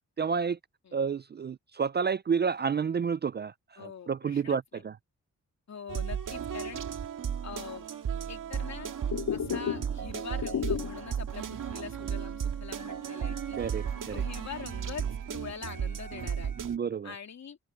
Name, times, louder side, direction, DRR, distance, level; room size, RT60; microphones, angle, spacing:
voice 1, 0.2-0.6 0.9-5.0 13.6-14.2 16.6-17.1, right 6 dB, 35° right, 0.4 m, -30 dB
voice 2, 3.8-4.8 5.7-6.8 7.4-7.9 8.3-8.9 9.3-13.6 14.1-16.5 17.0-17.6, left 6 dB, 55° left, 2.7 m, -43 dB
sound 1, 5.9-16.8, right 8 dB, 75° right, 2.0 m, -35 dB
sound 2, 9.0-10.0 10.3-11.1 11.5-11.6 12.0-12.1 12.6-14.1 14.4-15.0, left 8 dB, 85° left, 2.3 m, -34 dB
open air
wide cardioid pair, 110°, 32 cm